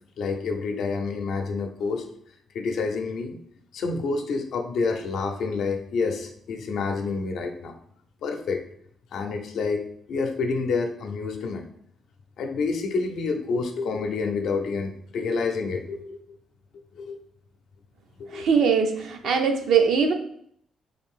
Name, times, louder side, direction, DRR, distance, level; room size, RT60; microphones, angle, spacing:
voice 1, 0.2-2.1 2.5-3.4 3.7-7.8 8.2-8.6 9.1-11.7 12.4-16.4 16.9-17.2 18.2-18.5, left 4 dB, 70° left, 4 dB, 0.6 m, -28 dB
voice 2, 18.3-20.1, right 6 dB, 75° right, 4 dB, 0.6 m, -21 dB
3.8 x 2.6 x 3.7 m, 0.66 s
cardioid pair, 90°, 0 cm